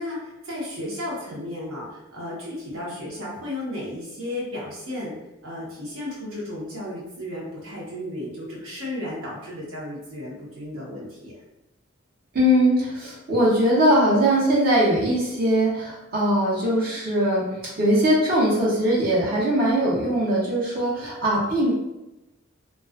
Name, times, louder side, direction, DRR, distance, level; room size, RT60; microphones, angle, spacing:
voice 1, 0.0-5.1 5.4-11.3 19.6-19.7, left 1 dB, 80° right, -5 dB, 0.9 m, -34 dB
voice 2, 12.3-21.7, equal, 45° right, -5 dB, 0.7 m, -21 dB
2.3 x 2.3 x 2.4 m, 0.94 s
head